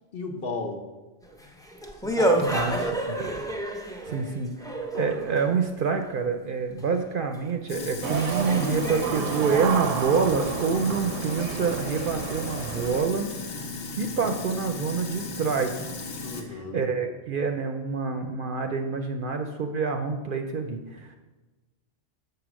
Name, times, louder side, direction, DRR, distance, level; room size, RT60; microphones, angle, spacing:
voice 1, 0.1-0.8 2.0-2.9 10.7-11.3 16.2-16.9, left 3 dB, 55° left, 2 dB, 1.1 m, -36 dB
sound 1, 1.3-5.6 7.5-7.6 8.1-10.6, right 1 dB, 5° left, 0.4 m, -29 dB
voice 2, 3.7-15.9 16.5-21.2, right 5 dB, 60° right, 5 dB, 0.6 m, -27 dB
Sink (filling or washing), 7.7-16.4, left 3 dB, 85° left, 1.2 m, -36 dB
sound 2, 8.0-13.1, right 7 dB, 85° right, 0.9 m, -32 dB
6.8 x 4.9 x 6.1 m, 1.2 s
omnidirectional pair, 1.2 m